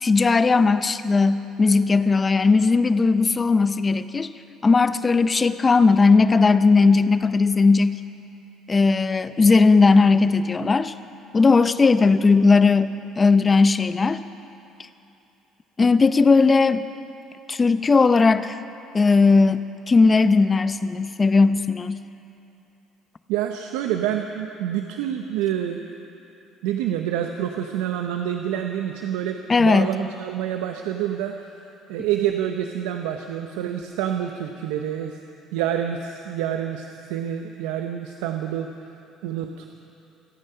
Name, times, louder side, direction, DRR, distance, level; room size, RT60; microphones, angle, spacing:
voice 1, 0.0-4.3 4.6-8.0 8.7-10.9 11.3-14.2 15.8-16.8 17.5-18.6 18.9-22.0 29.5-29.9, left 4 dB, 25° left, 13 dB, 0.6 m, -17 dB
voice 2, 23.3-25.9 26.6-35.2 35.5-38.9 39.2-39.7, right 10 dB, 85° right, 5 dB, 0.7 m, -27 dB
26.5 x 9.1 x 5.6 m, 2.8 s
supercardioid pair, 85°, 0 cm